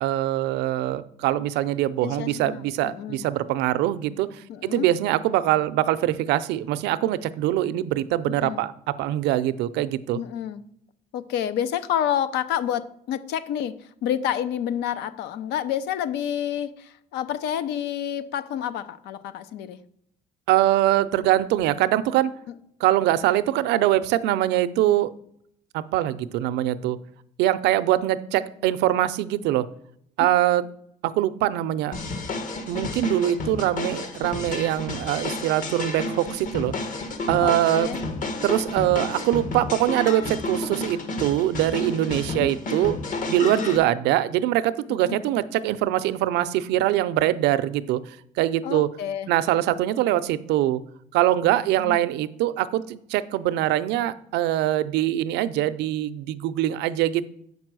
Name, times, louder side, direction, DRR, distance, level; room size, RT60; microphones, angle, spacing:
voice 1, 0.0-10.2 20.5-22.3 22.8-25.1 25.7-27.0 27.4-29.7 30.2-30.7 31.0-32.0 32.7-36.7 37.3-37.9 38.4-43.0 43.3-48.9 49.3-50.8 51.1-57.2, right 13 dB, 85° right, 15 dB, 0.5 m, -23 dB
voice 2, 2.0-3.2 4.5-4.9 8.4-8.6 10.1-10.6 11.1-13.7 14.0-19.8 37.4-38.0 42.1-42.5 43.4-43.7 45.0-45.2 48.6-49.3 51.8-52.0, left 10 dB, 85° left, 14 dB, 0.7 m, -29 dB
sound 1, 31.9-43.8, left 2 dB, 50° left, 1.5 m, -31 dB
7.3 x 5.4 x 6.1 m, 0.72 s
cardioid pair, 110°, 17 cm